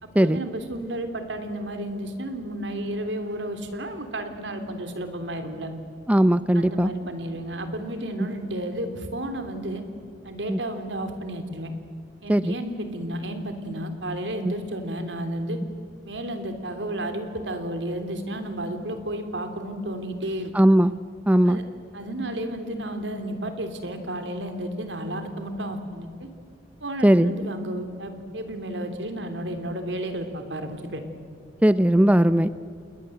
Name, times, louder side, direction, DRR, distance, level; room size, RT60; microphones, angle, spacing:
voice 1, 0.0-5.7 6.5-9.8 10.2-11.7 12.2-15.6 16.0-20.5 21.4-21.6 21.9-26.3 26.8-31.0, right 1 dB, 80° right, 7 dB, 3.2 m, -32 dB
voice 2, 6.1-6.9 8.2-8.3 10.5-10.6 12.3-12.6 14.4-14.5 20.5-20.9 21.3-21.6 27.0-27.3 31.6-32.5, right 1 dB, 10° right, 14 dB, 0.5 m, -18 dB
29.0 x 20.5 x 7.8 m, 2.4 s
head